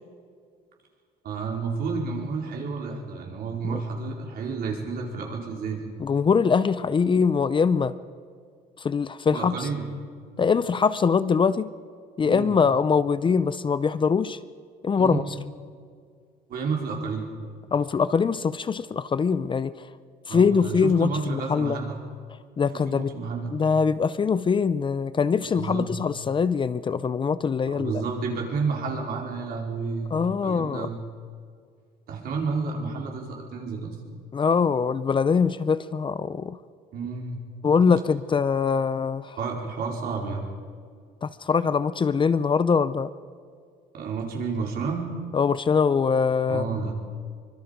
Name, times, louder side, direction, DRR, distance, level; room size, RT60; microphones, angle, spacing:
voice 1, 1.2-5.9 9.3-9.9 12.2-12.6 15.0-15.2 16.5-17.3 20.3-22.0 22.7-23.5 25.4-25.9 27.7-30.1 30.4-31.0 32.1-34.0 36.9-37.4 39.4-40.4 43.9-45.1 46.5-46.9, right 4 dB, 65° right, 0 dB, 4.7 m, -30 dB
voice 2, 6.0-7.9 8.8-9.7 10.4-11.7 12.2-14.4 14.8-15.2 17.7-19.9 20.3-21.8 22.6-23.1 23.5-28.0 30.1-30.9 34.3-36.6 37.6-39.4 41.2-43.1 45.3-46.9, left 5 dB, 30° left, 14 dB, 0.6 m, -23 dB
24.5 x 22.5 x 5.3 m, 2.2 s
cardioid pair, 110°, 17 cm